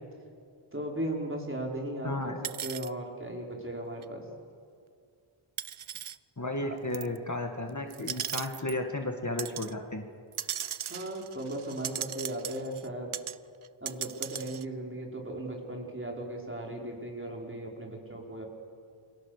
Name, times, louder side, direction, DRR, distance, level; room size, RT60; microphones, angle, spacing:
voice 1, 0.7-4.2 6.7-6.8 10.9-13.1 13.8-18.5, right 1 dB, 25° right, 0 dB, 5.3 m, -37 dB
voice 2, 2.0-2.4 6.4-10.0, left 2 dB, 35° left, 4 dB, 2.1 m, -33 dB
sound 1, 2.4-2.9 4.0-4.1 5.6-6.2 6.9-7.2 7.9-8.8 9.4-9.7 10.3-12.9 13.1-13.4 13.6-14.6, right 9 dB, 75° right, 0.7 m, -37 dB
29.0 x 23.5 x 6.9 m, 2.2 s
wide cardioid pair, 65°, 50 cm